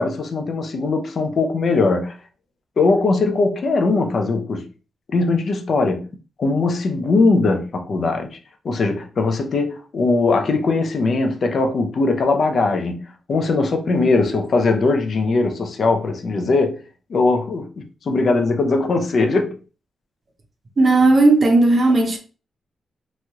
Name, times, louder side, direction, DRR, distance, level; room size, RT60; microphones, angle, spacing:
voice 1, 0.0-2.2 2.8-4.7 5.1-6.1 6.4-8.4 8.6-13.0 13.3-16.8 17.1-19.6, left 3 dB, 50° left, 0.4 m, -20 dB
voice 2, 20.8-22.2, right 2 dB, 35° right, 0.6 m, -14 dB
3.0 x 2.3 x 2.8 m
wide cardioid pair, 145°, 0 cm